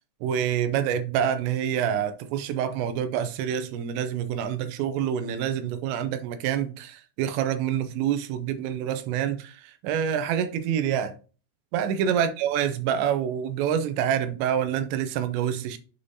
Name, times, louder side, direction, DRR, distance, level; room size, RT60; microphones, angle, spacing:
voice 1, 0.2-11.1 11.7-15.8, right 9 dB, 85° right, 2.9 m, -27 dB
7.2 x 5.0 x 2.7 m
omnidirectional pair, 5.1 m